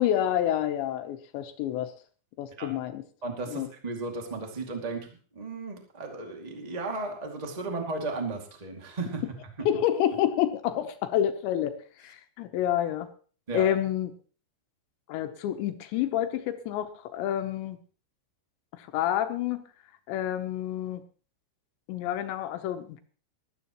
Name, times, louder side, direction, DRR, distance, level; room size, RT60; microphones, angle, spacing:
voice 1, 0.0-1.9 2.4-3.0 3.5-3.7 9.7-13.1 13.5-14.1 15.1-17.8 18.7-19.6 20.1-21.0 21.9-23.0, left 11 dB, 80° left, 8 dB, 3.1 m, -28 dB
voice 2, 3.2-5.1 5.3-9.2 13.5-13.6, right 3 dB, 55° right, 2 dB, 0.4 m, -34 dB
19.5 x 13.0 x 3.0 m, 0.40 s
omnidirectional pair, 5.2 m